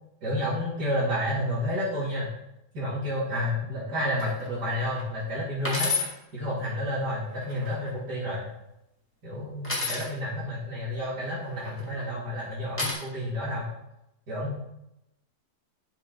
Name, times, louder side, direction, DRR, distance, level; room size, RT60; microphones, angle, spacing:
voice 1, 0.2-2.3 2.7-5.9 6.3-8.5 9.2-13.7 14.3-14.6, left 1 dB, 70° right, -10 dB, 2.8 m, -30 dB
sound 1, 4.2-4.5 5.0-5.1 5.6-6.1 7.3-7.9 9.6-10.1 11.5-12.0 12.8-12.9, left 3 dB, 5° left, 2.3 m, -30 dB
11.5 x 4.9 x 3.9 m, 0.87 s
omnidirectional pair, 1.8 m